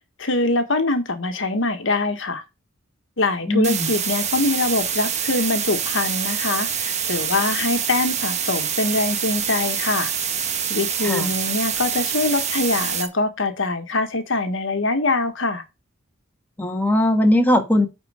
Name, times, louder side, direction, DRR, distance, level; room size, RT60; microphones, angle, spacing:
voice 1, 0.2-2.4 3.2-10.1 10.7-15.6, left 2 dB, 65° left, 1.4 m, -23 dB
voice 2, 3.5-3.9 11.0-11.3 16.6-17.9, left 1 dB, 10° left, 1.5 m, -19 dB
sound 1, 3.6-13.1, right 8 dB, 35° right, 1.3 m, -25 dB
9.6 x 4.4 x 4.9 m
head